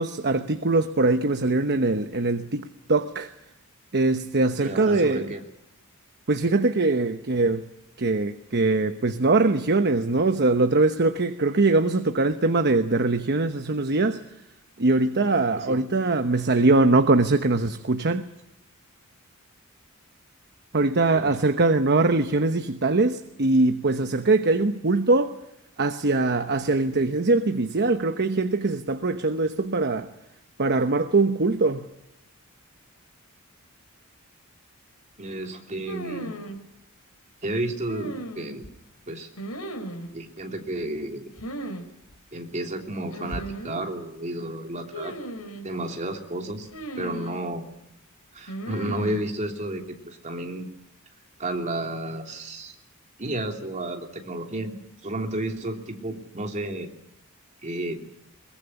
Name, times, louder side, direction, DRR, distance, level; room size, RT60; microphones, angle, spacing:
voice 1, 0.0-3.3 3.9-5.3 6.3-7.7 8.0-14.2 14.8-18.3 20.7-25.4 25.8-30.1 30.6-31.8, right 3 dB, 50° right, 1.0 m, -22 dB
voice 2, 4.6-5.4 15.6-15.8 21.1-21.3 35.2-36.3 37.4-38.6 39.1-39.3 40.1-41.3 42.3-45.2 45.6-46.7 47.0-47.6 48.3-50.7 51.4-52.7 53.2-54.8 55.0-56.9 57.6-58.1, right 1 dB, 35° right, 3.2 m, -32 dB
sound 1, 35.9-36.6 37.9-38.7 39.4-40.1 41.4-41.8 42.1-42.2 43.1-43.8 44.9-45.7 46.7-47.5 48.5-49.2, right 1 dB, 90° left, 4.2 m, -36 dB
22.5 x 21.0 x 10.0 m
head